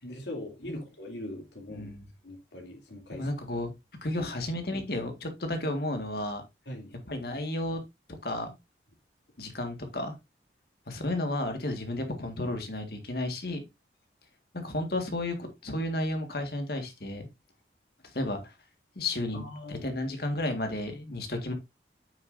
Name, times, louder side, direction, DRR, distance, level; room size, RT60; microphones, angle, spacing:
voice 1, 0.0-1.9 2.2-3.3 4.2-4.3 6.7-7.0 19.3-19.9, left 1 dB, 85° left, 3.1 m, -41 dB
voice 2, 1.7-2.1 3.1-3.7 4.0-6.4 7.1-7.8 8.2-8.5 9.4-10.1 10.9-13.6 14.5-17.3 18.1-18.5 19.0-19.4 19.7-21.5, left 1 dB, 60° left, 1.9 m, -32 dB
9.1 x 7.0 x 2.7 m
head